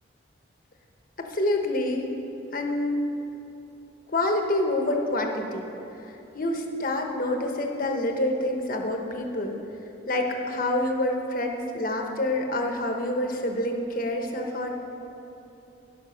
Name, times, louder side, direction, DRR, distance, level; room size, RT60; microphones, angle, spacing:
voice 1, 1.2-2.1 2.5-3.1 4.1-5.7 6.3-9.6 10.1-14.7, left 1 dB, 45° left, 2 dB, 1.1 m, -27 dB
16.0 x 6.0 x 5.9 m, 2.9 s
head